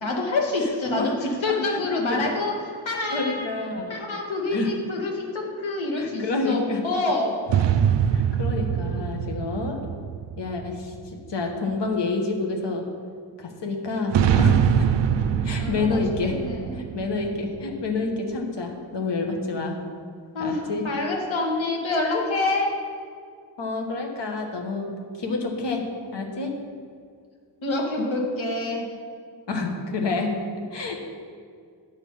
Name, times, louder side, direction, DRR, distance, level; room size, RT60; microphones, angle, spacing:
voice 1, 0.0-2.5 2.9-3.5 3.9-6.6 6.8-7.5 15.6-16.8 20.3-22.7 27.6-28.9, left 2 dB, 85° left, 0 dB, 1.8 m, -27 dB
voice 2, 1.5-1.8 2.1-2.3 3.1-4.0 4.5-4.7 6.0-6.8 8.1-9.8 10.4-12.9 13.4-14.7 15.4-16.5 16.7-19.8 20.4-20.9 22.1-22.2 23.6-26.5 29.5-30.4 30.7-31.0, left 3 dB, 65° left, 3 dB, 1.4 m, -28 dB
sound 1, 7.5-11.2 14.1-17.9, right 8 dB, 70° right, 0.5 m, -23 dB
8.8 x 6.7 x 5.5 m, 2.1 s
wide cardioid pair, 145°, 45 cm